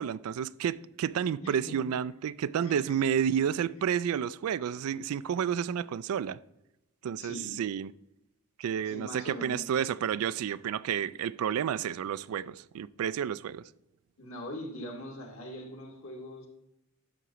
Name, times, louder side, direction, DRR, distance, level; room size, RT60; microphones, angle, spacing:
voice 1, 0.0-6.4 7.0-7.9 8.6-13.6, right 8 dB, 70° right, 0.3 m, -30 dB
voice 2, 1.4-1.8 2.6-3.0 7.2-7.5 8.8-9.6 14.2-16.5, equal, 70° left, 2.4 m, -42 dB
11.0 x 6.8 x 3.0 m
head